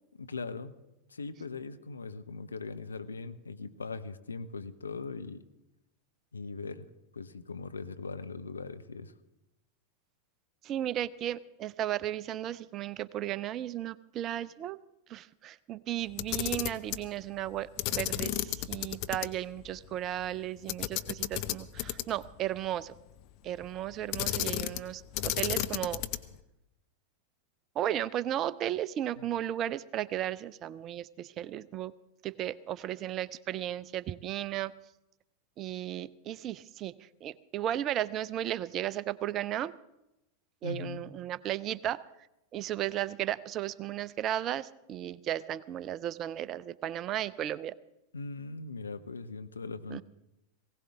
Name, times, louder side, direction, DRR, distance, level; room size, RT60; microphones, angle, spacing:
voice 1, 0.2-0.7 1.1-5.4 6.3-6.9 7.1-9.1 29.2-29.3 40.6-41.0 48.1-50.0, left 4 dB, 75° left, 10 dB, 0.7 m, -40 dB
voice 2, 10.6-14.8 15.1-22.9 23.4-26.0 27.8-31.9 32.2-34.7 35.6-39.7 40.6-42.0 42.5-47.8 49.9-50.0, right 12 dB, 35° right, 20 dB, 0.5 m, -35 dB
Camera, 16.1-17.1 17.8-19.3 19.6-19.7 20.7-22.3 24.1-24.9 25.1-26.4, left 15 dB, 40° left, 0.8 m, -32 dB
19.5 x 17.5 x 3.6 m, 0.91 s
figure-of-eight pair, 90°, 0 cm